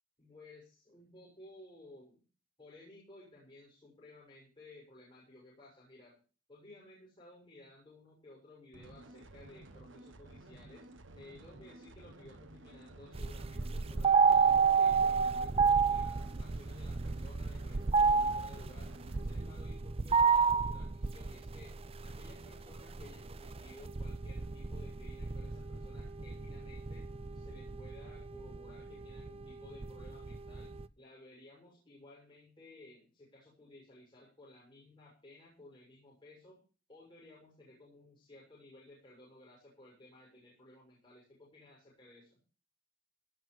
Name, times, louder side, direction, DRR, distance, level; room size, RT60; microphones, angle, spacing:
voice 1, 0.2-2.2 2.6-6.2 6.5-10.9 11.1-21.7 22.0-27.1 27.3-36.6 36.9-42.4, left 2 dB, 25° left, -5 dB, 6.6 m, -57 dB
sound 1, 8.7-19.4, right 1 dB, 85° right, 1.3 m, -53 dB
sound 2, 13.1-30.9, right 5 dB, 30° right, 0.5 m, -31 dB
17.0 x 6.4 x 6.9 m, 0.37 s
head